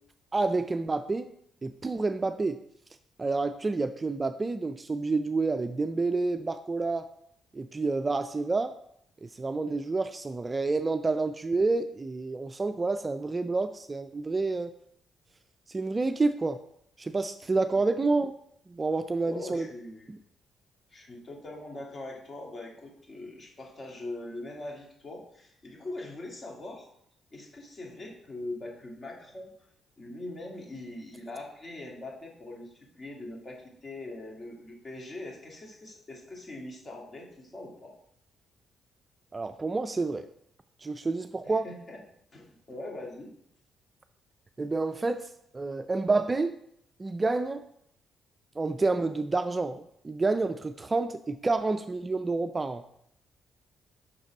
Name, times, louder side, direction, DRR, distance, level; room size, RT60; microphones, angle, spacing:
voice 1, 0.3-1.3 1.6-2.6 3.2-7.1 7.5-8.7 9.2-14.7 15.7-16.6 17.0-18.3 18.7-19.7 20.1-20.2 39.3-40.3 40.8-41.7 44.6-46.6 47.0-47.7 48.6-52.8, right 3 dB, 25° right, 9 dB, 0.3 m, -29 dB
voice 2, 19.2-20.1 20.9-26.9 27.3-29.5 30.0-37.9 41.4-42.0 42.3-43.3, left 2 dB, 35° left, 0 dB, 1.8 m, -42 dB
5.9 x 3.9 x 5.1 m, 0.70 s
cardioid pair, 90°, 0 cm